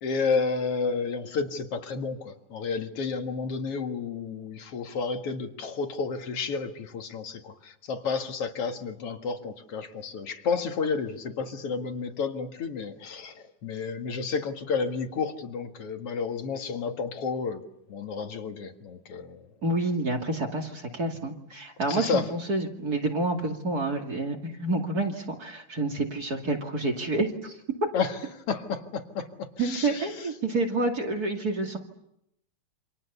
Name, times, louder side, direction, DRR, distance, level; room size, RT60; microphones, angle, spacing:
voice 1, 0.0-17.6 17.9-19.4 21.9-22.3 27.9-28.2 28.5-30.1, left 5 dB, 55° left, 6 dB, 2.5 m, -31 dB
voice 2, 19.6-27.6 29.6-31.8, right 2 dB, 35° right, 2 dB, 2.7 m, -28 dB
29.0 x 26.0 x 6.9 m, 0.81 s
omnidirectional pair, 3.3 m